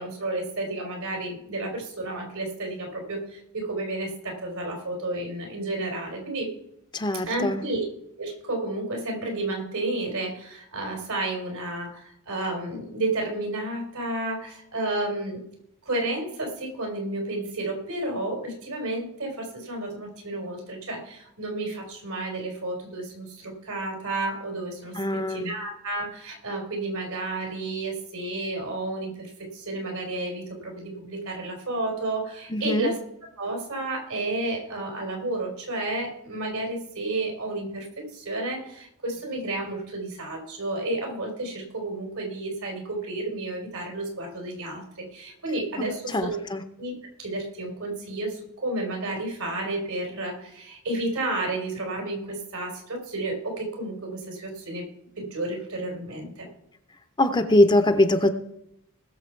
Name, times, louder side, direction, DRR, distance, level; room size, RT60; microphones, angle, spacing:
voice 1, 0.0-6.5 7.2-7.8 8.2-15.4 15.8-33.0 33.4-44.8 45.1-46.4 46.8-54.8 55.2-56.5, right 2 dB, 80° right, 1 dB, 4.2 m, -31 dB
voice 2, 6.9-7.6 25.0-25.5 32.5-32.9 45.8-46.6 57.2-58.3, left 1 dB, 20° left, 9 dB, 0.7 m, -22 dB
19.5 x 6.8 x 4.6 m, 0.77 s
head